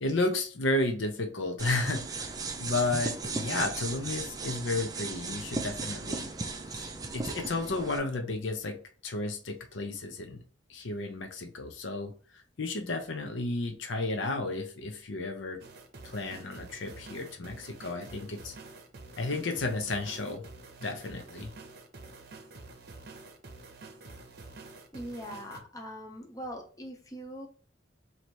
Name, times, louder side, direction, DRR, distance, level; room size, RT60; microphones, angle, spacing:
voice 1, 0.0-2.3 2.6-6.3 6.7-10.4 10.7-12.1 12.6-15.6 16.0-18.5 19.2-20.4 20.8-21.5, left 2 dB, 75° left, 5 dB, 0.7 m, -32 dB
sound 1, 1.6-8.0, right 4 dB, 20° right, 0.4 m, -36 dB
sound 2, 15.6-25.6, right 3 dB, 55° right, 0.7 m, -48 dB
voice 2, 24.9-27.5, equal, 20° left, 1 dB, 0.7 m, -41 dB
3.1 x 2.9 x 4.4 m, 0.41 s
head